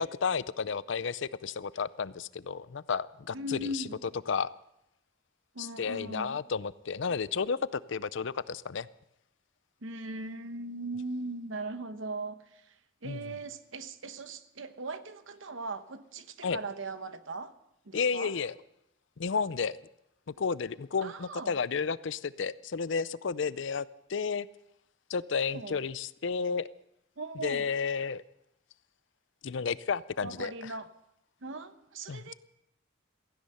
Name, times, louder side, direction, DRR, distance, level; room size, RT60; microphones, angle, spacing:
voice 1, 0.0-3.8 4.3-4.5 5.6-8.9 13.0-13.2 16.4-16.6 17.9-18.5 19.2-19.8 20.4-24.5 25.1-26.7 27.4-28.2 29.4-30.7 32.1-32.3, left 5 dB, 65° left, 17 dB, 0.5 m, -32 dB
voice 2, 3.3-4.0 5.5-6.4 9.8-12.8 13.0-17.5 17.8-18.3 21.0-21.6 25.3-25.8 27.2-27.7 30.2-30.9 31.4-32.3, right 2 dB, 70° right, 11 dB, 1.0 m, -39 dB
17.0 x 15.5 x 5.6 m, 0.81 s
head